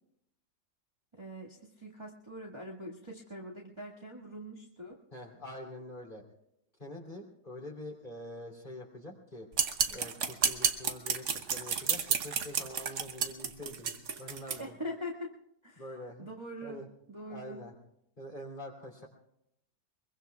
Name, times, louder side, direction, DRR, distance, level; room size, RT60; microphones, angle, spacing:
voice 1, 1.1-5.0 14.6-15.3 15.6-15.8 16.2-17.6, equal, 15° right, -4 dB, 1.8 m, -43 dB
voice 2, 5.1-6.2 6.8-9.5 9.9-14.8 15.7-16.3 16.6-16.9 17.3-17.7 18.2-19.1, left 1 dB, 25° left, -1 dB, 3.3 m, -45 dB
sound 1, 9.5-14.6, right 6 dB, 50° right, 1.1 m, -31 dB
24.0 x 22.5 x 2.4 m, 0.78 s
omnidirectional pair, 2.1 m